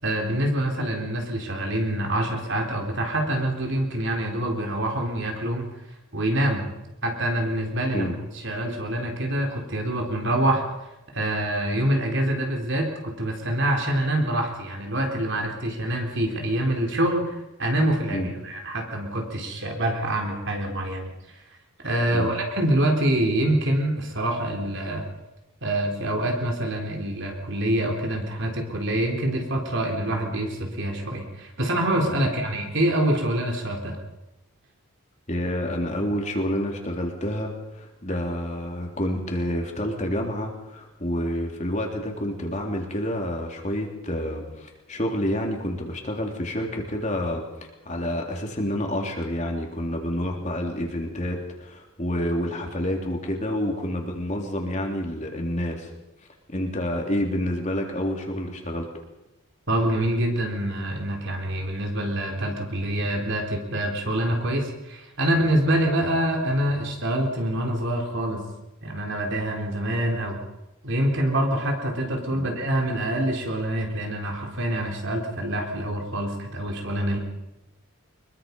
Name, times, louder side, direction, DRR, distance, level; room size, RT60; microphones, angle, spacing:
voice 1, 0.0-5.7 6.1-6.7 7.0-10.6 11.1-21.1 21.8-25.1 25.6-34.0 59.7-68.4 68.8-70.4 70.8-77.2, right 1 dB, 55° right, 2 dB, 4.1 m, -25 dB
voice 2, 35.3-55.9 56.5-58.9 72.3-72.5, equal, 30° left, 1 dB, 3.4 m, -28 dB
24.5 x 22.0 x 5.5 m, 0.95 s
head